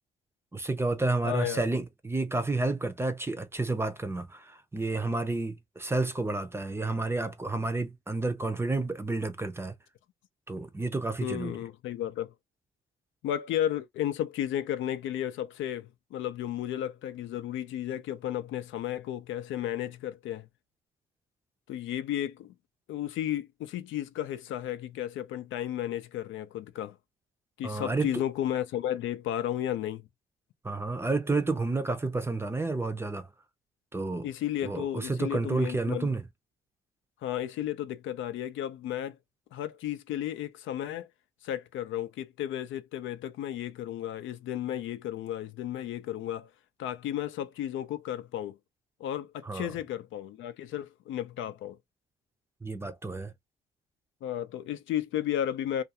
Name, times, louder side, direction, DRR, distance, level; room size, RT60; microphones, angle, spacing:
voice 1, 0.5-9.8 10.5-11.6 27.6-28.2 30.6-33.3 33.9-34.3 34.6-36.2 49.4-49.7 52.6-53.3, right 3 dB, 10° right, 0.5 m, -30 dB
voice 2, 1.2-1.6 11.2-12.3 13.2-20.5 21.7-22.5 22.9-26.9 27.6-30.1 34.2-36.1 37.2-39.2 39.5-41.1 41.4-46.5 46.8-48.6 49.0-51.8 54.2-55.8, left 11 dB, 75° left, 0.4 m, -33 dB
2.5 x 2.3 x 2.7 m
cardioid pair, 90°, 20 cm